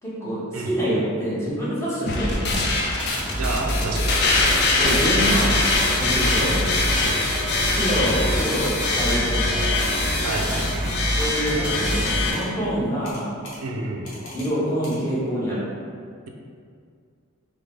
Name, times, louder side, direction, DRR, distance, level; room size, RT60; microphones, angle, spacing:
voice 1, 0.0-2.7 4.8-6.6 7.6-9.7 11.2-13.3 14.3-15.6, equal, 15° left, -9 dB, 1.1 m, -26 dB
sound 1, 2.1-12.3, left 2 dB, 50° left, 0.5 m, -23 dB
sound 2, 3.0-12.2, right 1 dB, 5° right, 0.5 m, -27 dB
voice 2, 3.4-4.3 7.0-7.3 10.2-10.7 13.6-14.1, right 2 dB, 90° right, 1 dB, 0.5 m, -30 dB
sound 3, 9.2-9.3 9.8-10.0 10.3-10.9 11.8-12.1 12.3-12.5 13.0-13.6 14.0-14.5 14.8-15.0, left 1 dB, 75° left, 1.0 m, -42 dB
3.9 x 3.0 x 3.4 m, 2.2 s
head